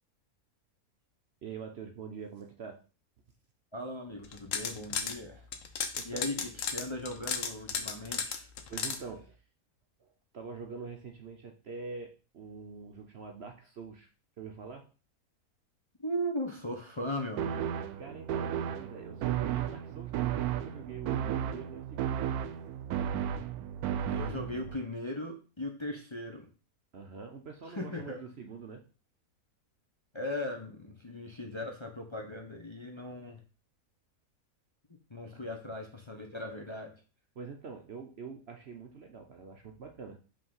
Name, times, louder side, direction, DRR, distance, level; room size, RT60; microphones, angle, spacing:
voice 1, 1.4-2.8 5.9-6.5 8.7-9.4 10.0-14.1 14.4-14.9 18.0-22.2 26.9-28.9 35.3-35.4 37.4-40.2, right 5 dB, 55° right, 4 dB, 0.9 m, -45 dB
voice 2, 3.7-5.4 6.0-8.5 16.0-18.0 24.1-26.5 27.7-28.2 30.1-33.4 35.1-36.9, left 1 dB, 25° left, 2 dB, 0.8 m, -38 dB
sound 1, 4.2-5.2 5.5-9.0, left 6 dB, 65° left, 1.2 m, -34 dB
sound 2, 17.4-24.8, right 9 dB, 85° right, 1.1 m, -34 dB
5.6 x 3.6 x 5.5 m, 0.34 s
omnidirectional pair, 1.6 m